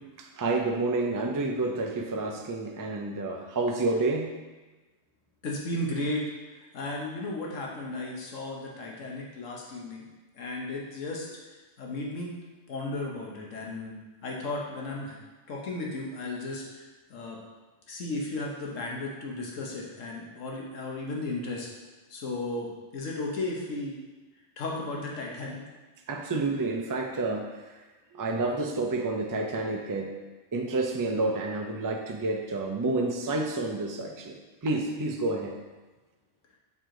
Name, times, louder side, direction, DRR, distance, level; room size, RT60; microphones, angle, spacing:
voice 1, 0.4-4.3 26.1-27.5 28.1-30.1 30.5-35.6, right 2 dB, 30° right, 2 dB, 0.4 m, -29 dB
voice 2, 5.4-6.2 6.5-10.1 10.3-12.3 12.7-13.9 14.2-15.2 15.5-16.8 17.1-17.4 17.9-21.7 22.1-24.0 24.6-25.6, left 2 dB, 90° left, -2 dB, 1.4 m, -35 dB
6.8 x 4.7 x 3.9 m, 1.2 s
omnidirectional pair, 1.3 m